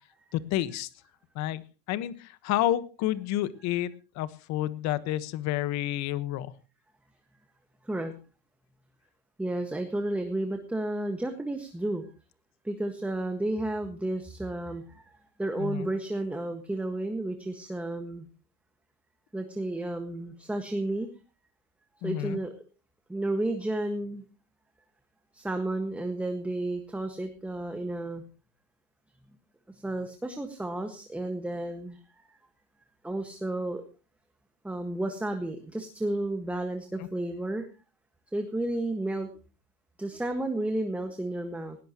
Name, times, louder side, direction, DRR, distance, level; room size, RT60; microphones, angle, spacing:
voice 1, 0.3-0.9 1.3-1.6 1.9-6.5 15.6-15.9 22.0-22.4 37.0-37.1, left 13 dB, 60° left, 15 dB, 1.4 m, -30 dB
voice 2, 9.4-12.0 12.6-15.0 15.4-18.2 19.3-21.1 22.0-22.5 23.1-24.2 25.3-28.2 29.7-32.4 33.0-33.8 34.6-37.7 38.3-39.4 40.0-41.8, right 1 dB, 5° right, 5 dB, 1.6 m, -32 dB
19.5 x 17.5 x 3.0 m, 0.33 s
cardioid pair, 155°, 32 cm